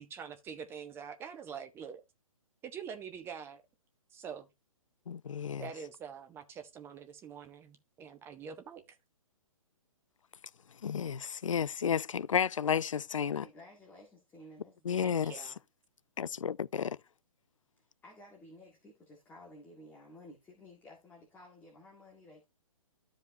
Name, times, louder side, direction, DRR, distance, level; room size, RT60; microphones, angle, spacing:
voice 1, 0.0-2.0 2.6-3.6 4.1-4.5 5.6-8.8 15.0-15.5, right 7 dB, 15° right, 0.9 m, -45 dB
voice 2, 5.1-5.7 10.8-13.4 14.9-15.3 16.2-17.0, left 7 dB, 65° left, 0.4 m, -32 dB
voice 3, 13.4-15.2 17.8-22.4, left 1 dB, 10° left, 1.9 m, -54 dB
13.0 x 5.0 x 2.8 m
figure-of-eight pair, 125°, 18 cm